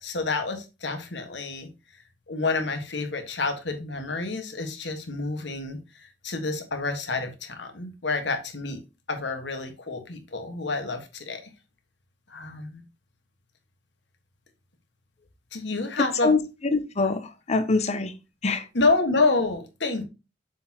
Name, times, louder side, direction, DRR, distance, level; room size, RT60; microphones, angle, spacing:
voice 1, 0.0-1.7 2.3-5.8 6.2-8.8 9.1-11.4 12.3-12.8 15.5-16.3 18.7-20.1, left 3 dB, 75° left, 1.5 m, -28 dB
voice 2, 16.0-16.4 16.7-18.1 18.4-18.7, left 3 dB, 40° left, 0.8 m, -24 dB
7.0 x 5.8 x 2.9 m
head